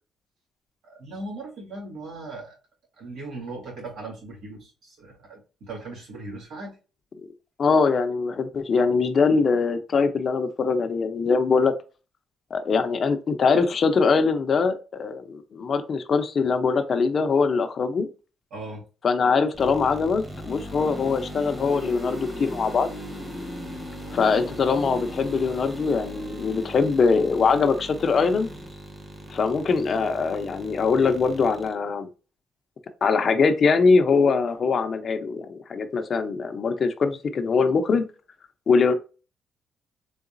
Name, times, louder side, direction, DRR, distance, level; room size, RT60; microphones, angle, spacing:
voice 1, 0.8-2.6 3.0-6.8 18.5-18.8, right 2 dB, 75° right, 2.0 m, -38 dB
voice 2, 7.6-11.7 12.5-18.1 19.0-22.9 24.1-28.5 29.3-32.1 33.0-38.1 38.7-38.9, left 4 dB, 50° left, 0.6 m, -22 dB
sound 1, 19.5-31.7, equal, 15° right, 1.3 m, -38 dB
3.9 x 3.5 x 2.5 m
cardioid pair, 90°, 0 cm